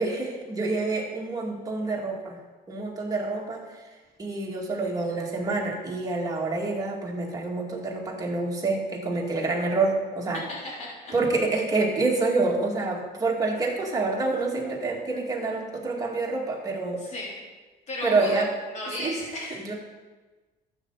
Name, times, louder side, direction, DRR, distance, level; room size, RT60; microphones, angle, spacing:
voice 1, 0.0-2.4 2.7-3.6 4.2-10.4 11.1-17.0 18.0-18.5 19.0-19.1 19.6-19.7, right 3 dB, 20° right, -2 dB, 2.4 m, -27 dB
voice 2, 10.8-11.1 17.0-17.4 17.9-18.4 18.7-19.6, left 1 dB, 45° left, -5 dB, 3.8 m, -35 dB
12.5 x 8.2 x 4.1 m, 1.3 s
cardioid pair, 110°, 17 cm